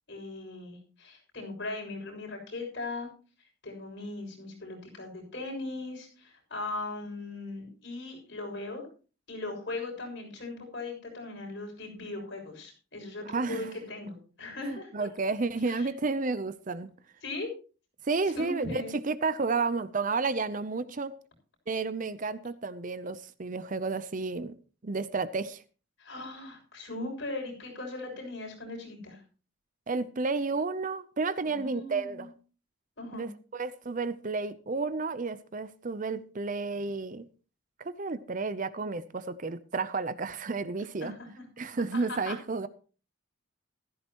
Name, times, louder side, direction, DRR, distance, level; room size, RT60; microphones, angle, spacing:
voice 1, 0.1-3.1 3.6-8.8 9.3-15.1 15.7-15.9 17.2-17.5 18.3-18.9 26.0-29.2 31.4-32.3 33.0-33.3 41.0-41.4 41.9-42.4, left 2 dB, 60° left, 6.9 m, -39 dB
voice 2, 13.2-13.7 14.6-16.9 18.0-21.1 21.7-24.6 24.8-25.6 29.9-32.3 33.1-37.3 37.8-41.1 41.6-42.7, right 4 dB, 40° right, 0.6 m, -31 dB
15.5 x 13.5 x 3.0 m
head